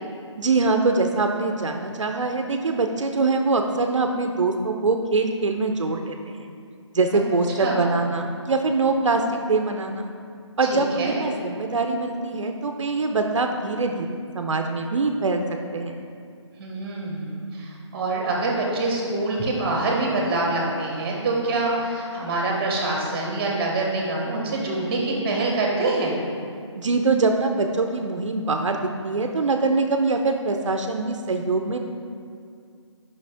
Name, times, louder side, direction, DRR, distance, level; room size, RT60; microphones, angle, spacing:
voice 1, 0.4-6.5 6.9-10.1 10.6-15.4 15.7-16.0 26.8-31.8, right 3 dB, 80° right, 4 dB, 0.6 m, -23 dB
voice 2, 10.7-11.2 16.6-26.2, right 2 dB, 20° right, -2 dB, 1.5 m, -25 dB
9.2 x 5.9 x 3.5 m, 2.3 s
figure-of-eight pair, 155°, 16 cm